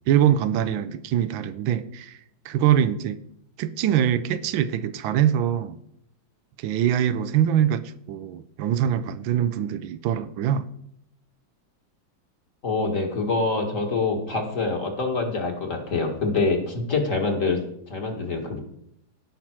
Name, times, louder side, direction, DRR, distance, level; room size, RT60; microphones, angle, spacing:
voice 1, 0.1-2.2 2.4-3.2 3.6-5.8 6.6-7.8 8.1-10.7, right 10 dB, 90° right, 13 dB, 1.4 m, -23 dB
voice 2, 12.6-17.6 17.9-18.6, left 3 dB, 40° left, 2 dB, 2.1 m, -25 dB
16.0 x 5.9 x 4.6 m, 0.74 s
omnidirectional pair, 2.1 m